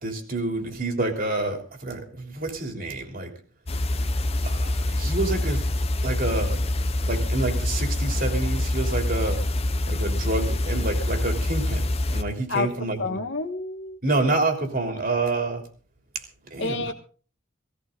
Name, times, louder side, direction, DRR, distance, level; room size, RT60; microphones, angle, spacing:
voice 1, 0.0-3.3 4.4-5.6 6.0-6.6 7.1-9.5 9.9-11.8 12.1-13.2 14.0-15.6 16.5-16.9, right 2 dB, 45° right, 3.3 m, -28 dB
sound 1, 3.7-12.2, left 1 dB, 30° left, 1.1 m, -25 dB
voice 2, 13.0-14.0 16.6-16.9, left 3 dB, 60° left, 1.8 m, -28 dB
17.0 x 16.5 x 3.9 m
head